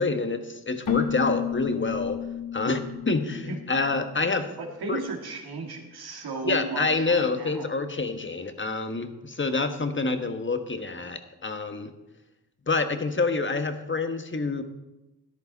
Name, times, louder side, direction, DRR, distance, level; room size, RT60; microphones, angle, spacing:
voice 1, 0.0-2.2 2.5-4.5 4.9-5.0 6.4-11.9 12.7-14.6, left 3 dB, 30° left, 8 dB, 1.4 m, -27 dB
Keyboard (musical), 0.9-4.5, left 10 dB, 55° left, 1.3 m, -32 dB
voice 2, 4.6-7.7, right 3 dB, 70° right, 1 dB, 2.4 m, -35 dB
13.0 x 10.5 x 4.1 m, 1.0 s
cardioid pair, 55°, 38 cm